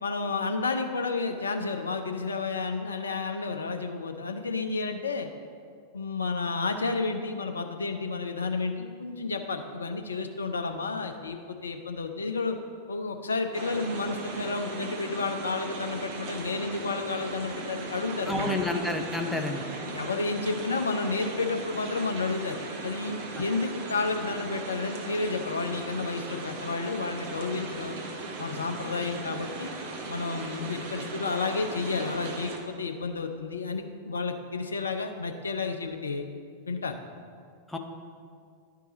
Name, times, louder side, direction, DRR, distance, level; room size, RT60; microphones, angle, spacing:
voice 1, 0.0-5.3 5.9-12.6 12.9-18.6 19.9-28.0 28.4-29.7 30.1-36.2 36.7-37.0, left 4 dB, 75° left, 6 dB, 0.6 m, -31 dB
sound 1, 13.5-32.6, right 3 dB, 45° right, 1.0 m, -38 dB
voice 2, 18.3-19.6 37.7-37.8, left 2 dB, 5° left, 3 dB, 0.8 m, -29 dB
11.0 x 4.7 x 3.9 m, 2.2 s
figure-of-eight pair, 90°, 0 cm